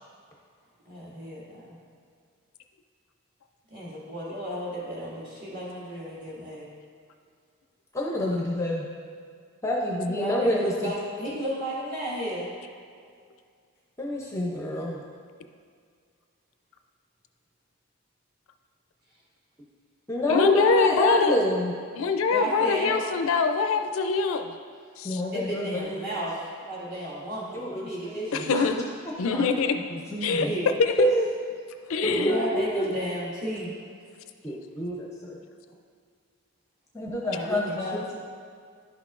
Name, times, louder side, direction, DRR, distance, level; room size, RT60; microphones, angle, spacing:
voice 1, 0.9-1.8 3.7-6.7 10.1-12.5 22.3-23.0 25.3-26.4 26.7-28.5 30.4-30.7 32.0-33.7 37.3-38.1, equal, 40° right, -7 dB, 1.9 m, -33 dB
voice 2, 7.9-8.8 9.6-10.9 14.0-15.0 20.1-21.7 25.0-26.0 27.5-28.7 29.3-29.5 29.9-30.5 31.0-31.3 32.0-32.9 34.4-35.4 36.9-38.1, equal, 15° left, -2 dB, 0.5 m, -27 dB
voice 3, 20.3-21.4 22.0-24.5 25.0-25.2 28.3-28.7 29.2-29.7 30.2-30.5 30.8-31.1 31.9-32.4, left 5 dB, 65° left, 7 dB, 0.4 m, -24 dB
11.0 x 5.8 x 2.5 m, 2.1 s
head